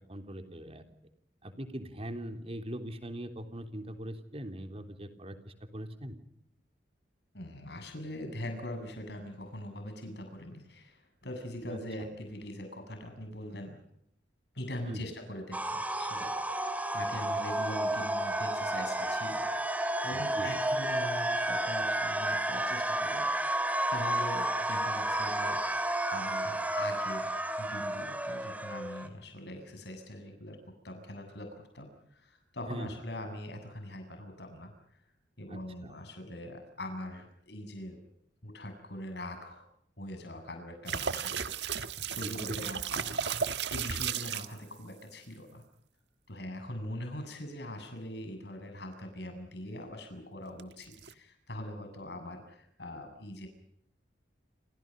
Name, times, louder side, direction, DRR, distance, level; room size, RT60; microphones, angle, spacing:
voice 1, 0.1-0.8 1.4-6.2 11.6-11.8 14.9-15.1 17.1-17.2 20.1-20.5 32.7-32.9 35.5-35.9 42.2-42.6, equal, 35° right, 7 dB, 3.6 m, -41 dB
voice 2, 7.3-13.8 14.5-19.5 20.0-25.6 26.1-27.3 27.6-30.6 30.8-34.7 35.4-38.0 38.4-39.6 40.0-45.6 46.3-53.5, left 1 dB, 70° left, 6 dB, 7.6 m, -42 dB
sound 1, 15.5-29.1, right 1 dB, 10° right, 2.7 m, -31 dB
sound 2, 40.9-44.6 50.6-51.1, right 7 dB, 75° right, 1.6 m, -34 dB
28.5 x 28.0 x 5.4 m, 0.73 s
head